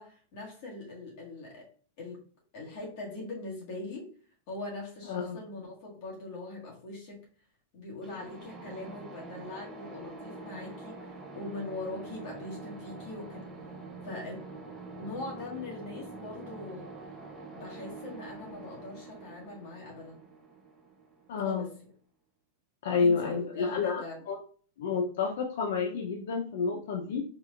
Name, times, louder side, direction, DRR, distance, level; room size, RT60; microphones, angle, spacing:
voice 1, 0.0-1.7 2.0-2.2 2.5-4.1 4.5-7.2 7.7-13.4 14.0-14.4 15.0-16.9 17.5-20.2 21.4-21.7 23.0-24.2, left 2 dB, 40° left, -3 dB, 1.7 m, -41 dB
voice 2, 5.1-5.4 21.3-21.7 22.8-24.0 24.3-24.4 24.8-27.2, left 5 dB, 65° left, 0 dB, 0.7 m, -29 dB
sound 1, 8.0-21.7, right 3 dB, 10° right, 0.6 m, -45 dB
4.7 x 3.3 x 2.5 m, 0.42 s
supercardioid pair, 175°, 0 cm